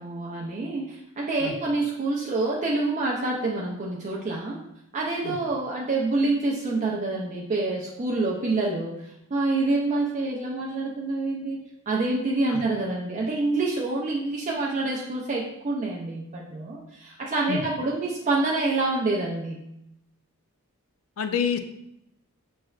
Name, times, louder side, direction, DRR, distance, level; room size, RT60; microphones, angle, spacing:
voice 1, 0.0-4.6 4.9-8.9 9.3-11.6 11.9-19.6, right 2 dB, 35° right, -3 dB, 0.4 m, -27 dB
voice 2, 21.2-21.6, left 7 dB, 65° left, 8 dB, 0.4 m, -27 dB
5.9 x 3.1 x 2.3 m, 0.82 s
head